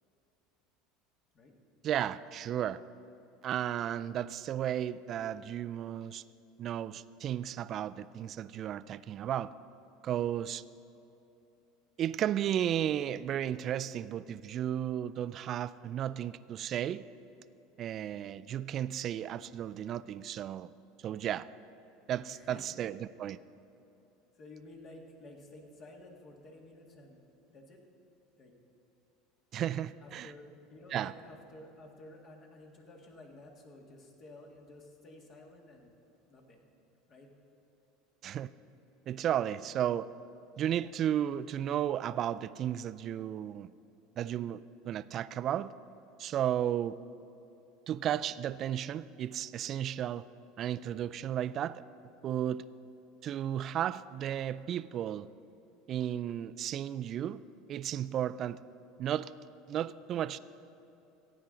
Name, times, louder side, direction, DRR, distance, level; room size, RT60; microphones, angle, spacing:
voice 1, 1.8-2.8 3.4-6.2 6.6-9.5 10.0-10.6 12.0-17.0 17.8-20.7 21.0-21.5 22.1-23.4 29.5-30.3 30.9-31.1 38.2-38.5 39.1-40.1 40.6-43.7 44.2-45.7 46.2-47.0 47.9-50.3 50.6-51.8 52.2-52.6 53.2-55.3 55.9-57.4 57.7-58.6 59.0-59.3 59.7-60.4, right 10 dB, 45° right, 16 dB, 0.3 m, -34 dB
voice 2, 22.3-22.9 24.3-27.2 27.5-27.8 28.4-28.5 30.0-35.9 36.3-36.7 37.0-37.3, left 2 dB, 45° left, 1 dB, 1.8 m, -52 dB
15.5 x 8.7 x 3.8 m, 2.9 s
hypercardioid pair, 90°, 0 cm